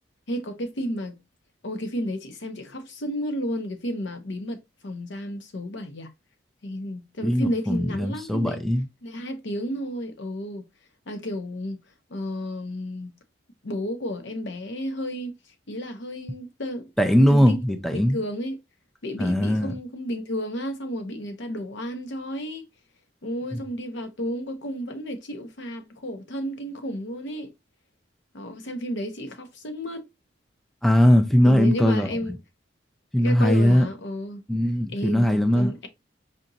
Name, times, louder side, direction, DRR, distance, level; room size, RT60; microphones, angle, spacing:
voice 1, 0.3-1.2 1.6-6.1 6.6-8.6 9.0-10.7 11.1-11.8 12.1-13.1 13.6-15.4 15.7-16.9 17.3-17.6 17.9-18.6 19.0-22.6 23.2-27.5 28.3-30.1 31.4-32.4 33.2-34.4 34.9-35.9, equal, 70° left, 0.8 m, -32 dB
voice 2, 7.2-8.8 17.0-18.2 19.2-19.7 30.8-32.1 33.1-33.9 34.5-35.7, equal, ahead, 0.4 m, -20 dB
5.1 x 2.9 x 2.6 m
head